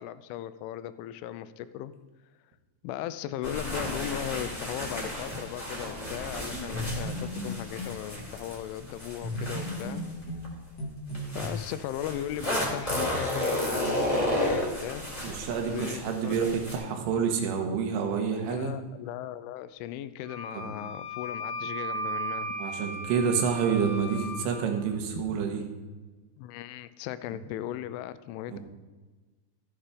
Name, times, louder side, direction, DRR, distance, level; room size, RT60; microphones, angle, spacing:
voice 1, 0.0-1.9 2.8-10.0 11.3-15.0 15.7-16.4 18.3-22.6 26.4-28.6, left 12 dB, 80° left, 14 dB, 3.0 m, -37 dB
sound 1, 3.4-10.5 11.1-16.8, left 1 dB, 5° left, 3.6 m, -33 dB
sound 2, 6.5-8.0 9.2-11.5, equal, 50° left, 1.1 m, -35 dB
voice 2, 15.2-18.7 20.6-20.7 22.6-25.6 28.5-28.6, right 6 dB, 80° right, 4 dB, 4.1 m, -28 dB
Wind instrument woodwind instrument, 20.2-24.5, right 1 dB, 65° left, 3.5 m, -36 dB
15.0 x 8.9 x 5.1 m, 1.3 s
omnidirectional pair, 5.8 m